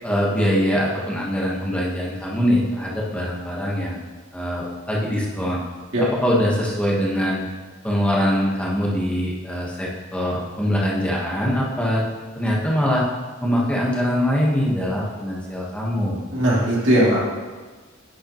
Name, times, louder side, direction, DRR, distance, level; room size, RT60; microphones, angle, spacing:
voice 1, 0.0-4.0 4.3-5.6 6.2-7.4 7.8-12.0 12.3-13.0 13.4-16.2, equal, 5° left, -5 dB, 1.2 m, -23 dB
voice 2, 16.3-17.2, right 1 dB, 65° right, -6 dB, 2.5 m, -18 dB
10.5 x 6.5 x 3.0 m, 1.3 s
head